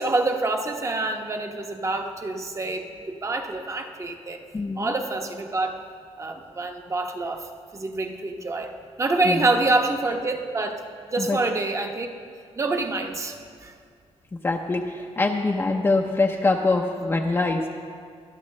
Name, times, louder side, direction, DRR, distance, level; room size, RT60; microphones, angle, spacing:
voice 1, 0.0-4.4 4.8-5.8 6.2-10.8 11.1-12.1 12.5-13.4 13.6-13.7, right 2 dB, 25° right, 4 dB, 1.0 m, -26 dB
voice 2, 4.5-4.9 9.3-9.4 11.2-11.4 14.4-17.7, left 3 dB, 20° left, 1 dB, 0.6 m, -24 dB
21.0 x 11.5 x 3.2 m, 2.2 s
cardioid pair, 130°, 11 cm